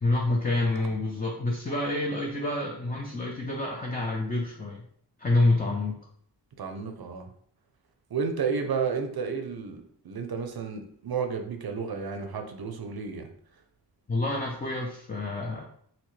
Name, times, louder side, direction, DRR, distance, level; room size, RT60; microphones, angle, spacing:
voice 1, 0.0-4.8 5.2-6.0 14.1-15.6, left 2 dB, 20° left, -1 dB, 0.5 m, -27 dB
voice 2, 6.6-7.3 8.1-13.3, right 5 dB, 55° right, 5 dB, 0.6 m, -32 dB
3.0 x 2.9 x 3.1 m, 0.62 s
cardioid pair, 65°, 44 cm